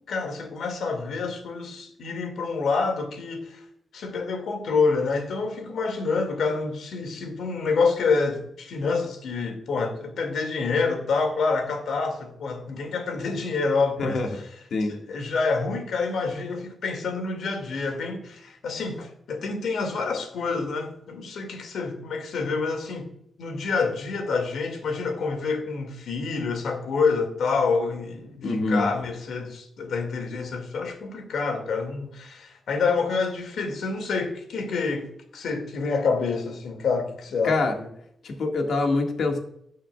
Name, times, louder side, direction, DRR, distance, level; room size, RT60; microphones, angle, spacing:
voice 1, 0.0-3.6 3.9-14.3 14.9-23.1 23.4-37.9, left 4 dB, 90° left, 5 dB, 2.1 m, -27 dB
voice 2, 28.4-28.9 37.4-37.7 38.2-39.4, left 3 dB, 65° left, 3 dB, 1.7 m, -24 dB
17.0 x 6.4 x 2.3 m, 0.72 s
wide cardioid pair, 155°, 0 cm